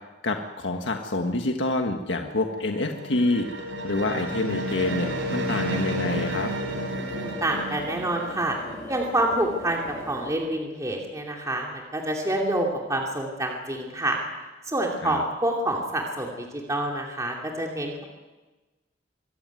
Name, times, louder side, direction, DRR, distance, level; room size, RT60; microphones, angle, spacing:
voice 1, 0.2-6.5 15.0-15.2, left 2 dB, 80° left, 4 dB, 1.5 m, -27 dB
sound 1, 2.3-9.7, right 1 dB, 85° right, 4.4 m, -32 dB
sound 2, 4.8-10.3, left 1 dB, 15° left, 7.7 m, -39 dB
voice 2, 7.0-8.6 8.9-14.2 14.7-18.0, right 1 dB, 20° right, 0 dB, 2.7 m, -27 dB
24.5 x 15.5 x 9.6 m, 1.2 s
head